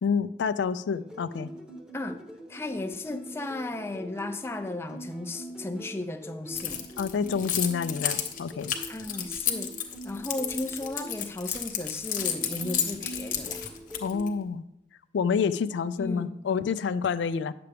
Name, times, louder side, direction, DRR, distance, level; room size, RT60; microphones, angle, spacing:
voice 1, 0.0-1.5 7.0-8.7 14.0-14.6 15.1-17.5, left 6 dB, 85° left, 14 dB, 0.3 m, -28 dB
sound 1, 0.9-11.2 12.0-14.3 15.5-16.0, right 1 dB, 5° right, 0.9 m, -44 dB
voice 2, 2.5-6.9 8.9-13.7 16.0-16.4, left 2 dB, 15° left, 7 dB, 0.4 m, -35 dB
Keys jangling, 6.6-14.3, left 9 dB, 50° left, 0.8 m, -31 dB
9.4 x 6.8 x 3.4 m, 0.82 s
head